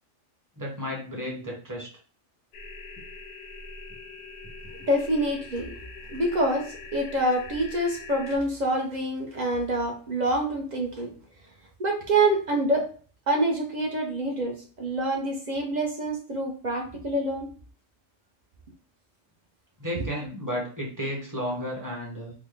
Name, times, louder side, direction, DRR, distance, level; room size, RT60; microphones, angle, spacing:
voice 1, 0.6-1.9 19.8-22.3, equal, 15° right, -2 dB, 0.9 m, -33 dB
sound 1, 2.5-8.4, left 3 dB, 65° left, 0.7 m, -43 dB
voice 2, 4.9-5.7 6.1-11.1 11.8-12.9 13.3-17.5, right 1 dB, 45° right, 1 dB, 0.6 m, -26 dB
3.9 x 2.1 x 3.2 m, 0.41 s
omnidirectional pair, 1.3 m